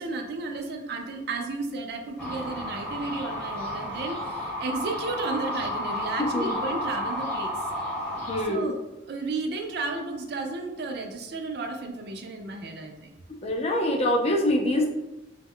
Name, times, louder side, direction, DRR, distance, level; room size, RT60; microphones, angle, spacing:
voice 1, 0.0-7.6 8.5-8.8 9.1-13.2, right 3 dB, 60° right, 4 dB, 0.4 m, -33 dB
sound 1, 2.2-8.4, left 1 dB, 5° left, 0.8 m, -32 dB
voice 2, 6.2-6.6 8.3-8.7 13.4-14.9, left 1 dB, 35° left, 1 dB, 0.4 m, -25 dB
2.1 x 2.0 x 3.6 m, 1.0 s
head